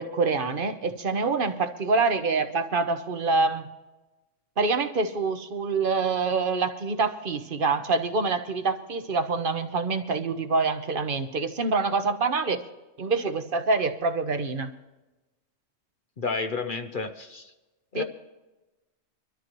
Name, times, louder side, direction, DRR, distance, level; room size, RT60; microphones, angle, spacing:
voice 1, 0.0-3.7 4.6-12.7 13.0-14.7 17.9-18.0, right 4 dB, 45° right, 1.1 m, -26 dB
voice 2, 16.2-17.5 17.9-18.0, left 4 dB, 45° left, 0.9 m, -31 dB
24.0 x 13.0 x 3.1 m
omnidirectional pair, 1.3 m